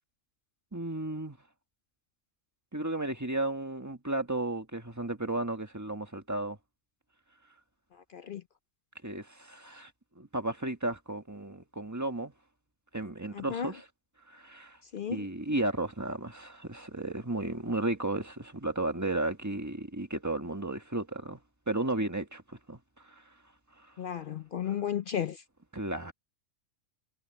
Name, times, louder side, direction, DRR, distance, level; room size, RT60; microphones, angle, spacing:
voice 1, 0.7-1.4 2.7-6.6 9.0-9.9 10.1-12.3 12.9-13.9 14.3-14.8 15.1-21.4 21.7-22.8 23.0-23.2 23.8-23.9 25.7-26.1, right 2 dB, 15° right, 1.6 m, -34 dB
voice 2, 8.1-8.4 13.3-13.7 14.9-15.3 24.0-25.4, left 9 dB, 60° left, 0.6 m, -34 dB
omnidirectional pair, 1.3 m